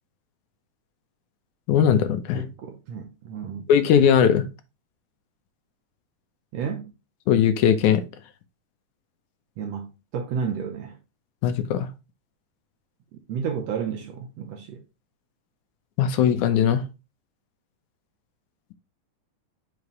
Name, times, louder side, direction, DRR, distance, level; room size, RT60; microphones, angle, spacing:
voice 1, 1.7-2.4 3.7-4.5 7.3-8.0 11.4-11.9 16.0-16.8, left 8 dB, 75° left, 2.0 m, -19 dB
voice 2, 2.3-3.6 6.5-6.8 9.6-11.0 13.1-14.8, right 6 dB, 70° right, 1.7 m, -31 dB
5.8 x 3.2 x 5.2 m
omnidirectional pair, 3.6 m